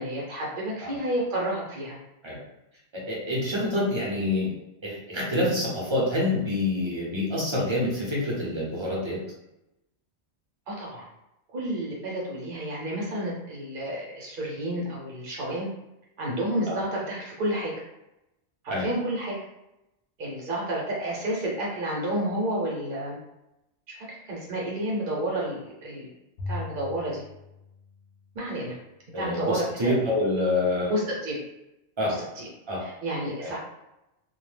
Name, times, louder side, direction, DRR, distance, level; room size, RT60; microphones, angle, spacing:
voice 1, 0.0-2.0 10.7-11.0 11.5-15.7 16.2-17.7 18.6-19.4 20.2-23.2 23.9-24.0 24.2-26.1 26.5-27.2 28.3-28.7 29.1-30.0 30.9-31.4 32.0-32.5 32.8-33.6, right 1 dB, 55° right, -4 dB, 0.9 m, -30 dB
voice 2, 2.9-4.5 4.8-9.2 16.7-16.8 18.7-18.9 29.1-30.9 32.0-32.1 32.7-32.8 33.4-33.5, left 1 dB, 30° right, -5 dB, 0.7 m, -27 dB
Bowed string instrument, 26.4-28.8, left 3 dB, 60° left, 0.7 m, -39 dB
2.3 x 2.1 x 3.2 m, 0.91 s
omnidirectional pair, 1.2 m